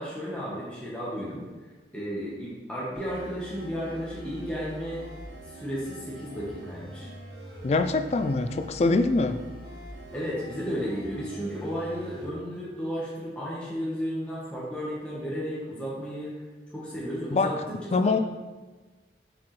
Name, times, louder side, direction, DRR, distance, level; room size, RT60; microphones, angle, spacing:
voice 1, 0.0-1.5 1.9-5.0 5.4-7.1 10.1-16.3 16.7-18.2, equal, 5° left, -8 dB, 1.2 m, -33 dB
sound 1, 2.9-12.3, equal, 65° right, 1.8 m, -44 dB
voice 2, 7.6-9.4 17.3-17.5 17.9-18.2, left 3 dB, 35° left, 8 dB, 0.3 m, -24 dB
6.9 x 4.9 x 3.2 m, 1.3 s
head